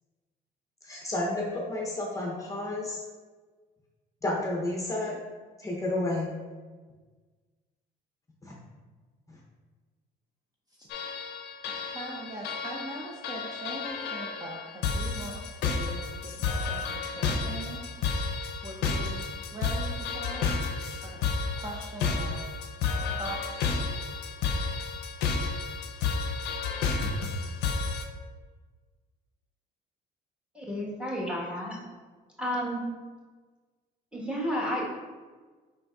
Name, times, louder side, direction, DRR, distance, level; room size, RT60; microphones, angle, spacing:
voice 1, 0.8-3.0 4.2-5.2 5.6-6.3 8.4-8.6, left 2 dB, 20° left, -3 dB, 0.6 m, -31 dB
sound 1, 10.9-28.0, left 4 dB, 85° left, 0.5 m, -31 dB
voice 2, 11.7-17.8 18.6-20.5 21.0-21.2 21.6-22.5 23.0-23.6, right 2 dB, 20° right, -2 dB, 0.5 m, -41 dB
voice 3, 30.5-31.8 32.4-32.8 34.1-34.9, equal, 5° right, -4 dB, 1.2 m, -31 dB
4.7 x 3.8 x 2.3 m, 1.4 s
cardioid pair, 110°, 17 cm